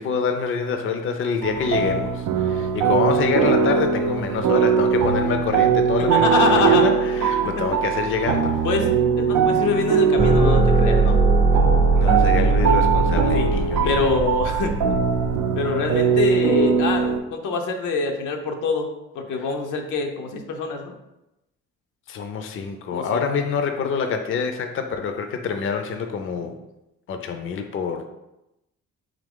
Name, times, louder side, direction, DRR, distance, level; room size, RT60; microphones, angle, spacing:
voice 1, 0.0-8.6 12.0-14.1 19.3-19.5 22.1-26.6 27.1-28.0, left 6 dB, 45° left, 6 dB, 0.5 m, -26 dB
sound 1, 1.4-17.2, right 6 dB, 85° right, 0.5 m, -21 dB
voice 2, 6.1-6.8 8.6-8.9 9.2-11.2 13.3-13.5 13.8-14.7 15.6-20.9 22.9-23.3, left 4 dB, 85° left, 3 dB, 0.7 m, -24 dB
sound 2, 10.2-15.4, right 3 dB, 30° right, 0.5 m, -19 dB
3.6 x 2.9 x 3.6 m, 0.92 s
cardioid pair, 90°, 30 cm